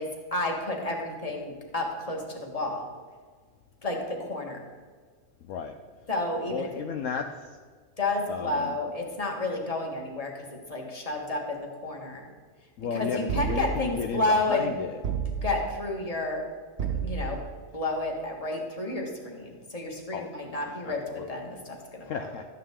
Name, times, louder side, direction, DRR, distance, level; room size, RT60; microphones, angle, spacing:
voice 1, 0.0-2.9 3.8-4.6 6.1-6.7 8.0-12.3 12.9-14.7 15.4-16.4 16.9-17.4 17.7-22.3, left 2 dB, 25° left, 0 dB, 1.7 m, -31 dB
voice 2, 5.4-5.8 6.5-7.6 8.3-8.8 12.8-15.0 20.1-21.3 22.0-22.5, left 6 dB, 70° left, 5 dB, 1.0 m, -34 dB
sound 1, 13.3-14.0 15.0-15.8 16.8-17.5, right 7 dB, 55° right, 1.0 m, -31 dB
13.0 x 9.6 x 3.7 m, 1.5 s
omnidirectional pair, 1.4 m